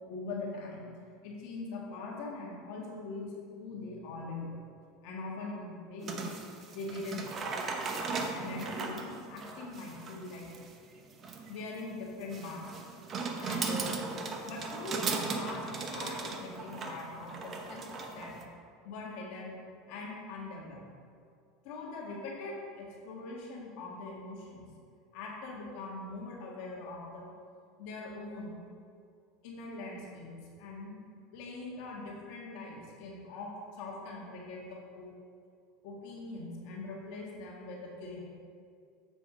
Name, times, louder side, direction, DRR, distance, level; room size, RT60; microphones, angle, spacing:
voice 1, 0.1-0.9 1.2-4.6 5.0-6.3 6.7-7.6 8.3-10.5 11.5-12.7 13.4-18.3 18.8-19.6 19.9-20.8 21.6-24.7 25.1-27.3 27.8-28.6 29.4-30.3 30.6-31.0 31.3-35.1 35.8-38.2, left 3 dB, 65° left, -2 dB, 1.8 m, -42 dB
sound 1, 6.0-18.4, right 4 dB, 35° right, 0.8 m, -38 dB
7.8 x 5.0 x 5.1 m, 2.3 s
supercardioid pair, 105°, 0 cm